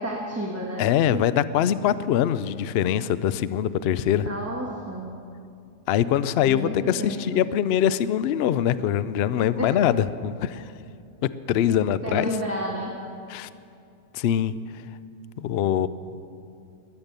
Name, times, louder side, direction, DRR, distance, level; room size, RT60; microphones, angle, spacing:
voice 1, 0.0-0.9 1.1-1.2 4.2-5.1 6.4-7.4 9.6-9.7 12.0-12.9, right 1 dB, 10° right, -3 dB, 1.3 m, -31 dB
voice 2, 0.8-4.3 5.9-10.6 11.5-12.3 13.3-13.5 14.1-14.5 15.4-15.9, left 10 dB, 75° left, 15 dB, 0.5 m, -23 dB
21.0 x 8.9 x 6.7 m, 2.5 s
omnidirectional pair, 1.6 m